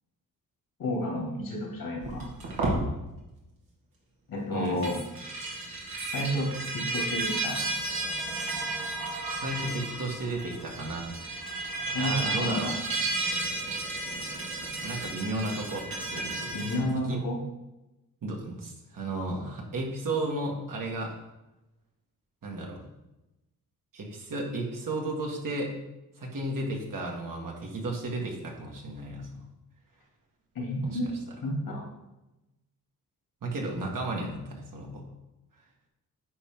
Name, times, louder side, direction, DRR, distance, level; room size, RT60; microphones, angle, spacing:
voice 1, 0.8-2.3 4.3-5.0 6.1-6.5 6.7-7.6 11.9-12.7 16.5-17.4 30.5-31.1 31.4-31.9, left 1 dB, 75° left, -1 dB, 2.6 m, -31 dB
sound 1, 2.0-2.8 4.7-16.8, right 2 dB, 80° right, 2.0 m, -33 dB
voice 2, 4.5-4.9 9.4-11.1 12.0-12.7 14.8-16.5 16.8-17.2 18.2-21.2 22.4-22.8 23.9-25.7 26.2-29.4 30.8-31.0 33.4-35.0, right 2 dB, 65° right, -1 dB, 1.9 m, -34 dB
9.7 x 4.4 x 3.7 m, 0.97 s
cardioid pair, 70°, 36 cm